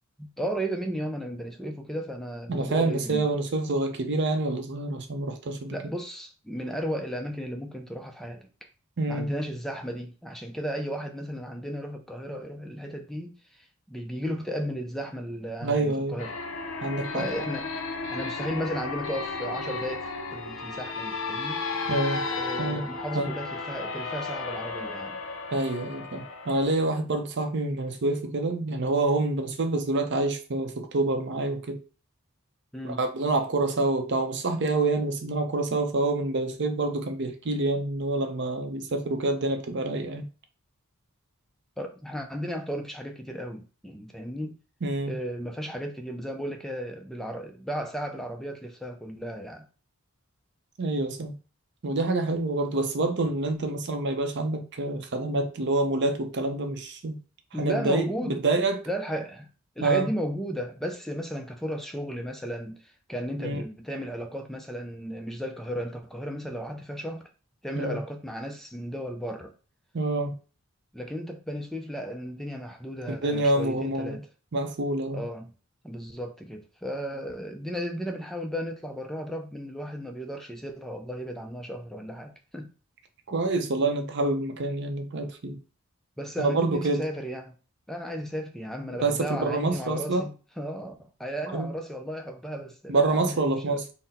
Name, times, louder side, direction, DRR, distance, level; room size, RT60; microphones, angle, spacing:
voice 1, 0.2-3.2 5.7-8.7 9.1-16.3 17.1-17.7 18.1-21.6 22.3-25.2 32.7-33.0 38.6-38.7 41.8-44.6 45.1-49.7 57.5-58.4 58.9-59.5 59.8-67.3 67.6-69.6 70.9-74.2 75.1-75.5 75.8-82.7 86.2-87.6 87.9-93.8, equal, ahead, 0.4 m, -34 dB
voice 2, 2.5-5.8 9.0-9.3 15.6-16.2 16.8-17.3 21.9-22.3 22.6-22.8 23.2-23.3 25.5-31.8 32.8-40.3 44.8-45.1 50.8-51.4 51.8-57.1 57.6-58.8 59.8-60.1 63.4-63.6 67.7-68.0 69.9-70.3 73.1-74.2 74.5-75.2 83.3-85.6 86.4-87.0 89.0-90.3 91.5-91.7 92.9-93.9, right 2 dB, 55° right, 0.6 m, -27 dB
sound 1, 16.2-26.6, left 3 dB, 65° left, 0.7 m, -34 dB
3.9 x 2.1 x 4.1 m
head